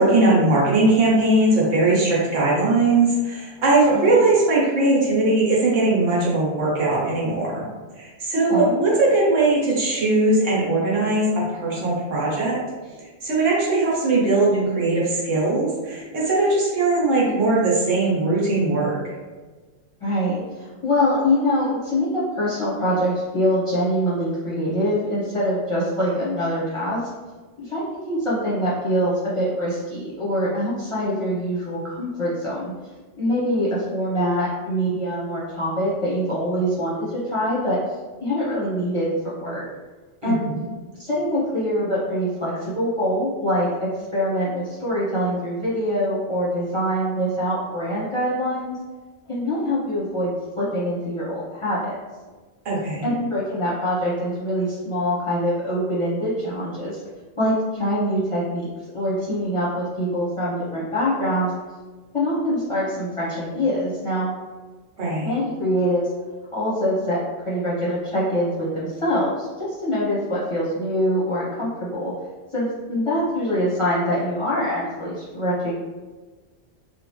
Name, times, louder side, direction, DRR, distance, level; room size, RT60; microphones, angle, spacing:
voice 1, 0.0-7.6 8.0-12.6 13.2-19.0 40.2-40.6 52.6-53.1 65.0-65.3, right 2 dB, 75° right, -5 dB, 1.3 m, -20 dB
voice 2, 20.0-27.0 27.6-32.7 33.2-37.8 38.2-39.1 39.3-39.6 40.2-40.5 40.9-48.8 49.3-52.0 53.0-57.0 57.4-58.7 58.9-61.5 62.1-64.3 65.2-66.1 66.5-72.1 72.5-75.7, equal, 30° left, -8 dB, 0.7 m, -24 dB
3.1 x 2.4 x 3.0 m, 1.3 s
omnidirectional pair, 1.3 m